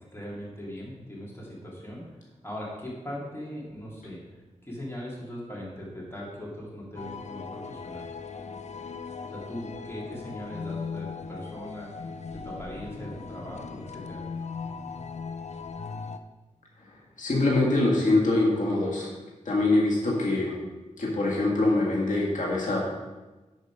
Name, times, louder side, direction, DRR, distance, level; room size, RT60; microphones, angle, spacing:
voice 1, 0.1-2.1 2.4-4.2 4.6-8.0 9.3-11.9 12.3-14.2, equal, 20° left, -5 dB, 3.4 m, -39 dB
sound 1, 7.0-16.2, left 5 dB, 65° left, 0.6 m, -38 dB
voice 2, 16.8-19.1 19.4-20.6 21.0-22.8, left 2 dB, 80° left, -3 dB, 1.8 m, -24 dB
11.0 x 5.0 x 5.1 m, 1.2 s
wide cardioid pair, 80°, 13 cm